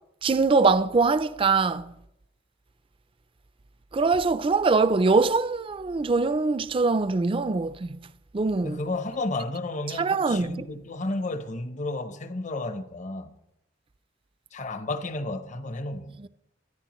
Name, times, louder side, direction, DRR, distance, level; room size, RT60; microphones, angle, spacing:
voice 1, 0.2-1.9 3.9-8.0 8.3-8.8 10.0-10.7, right 4 dB, 30° right, 0.4 m, -23 dB
voice 2, 8.6-13.3 14.5-16.2, left 2 dB, 45° left, 0.9 m, -32 dB
23.5 x 10.5 x 3.1 m
head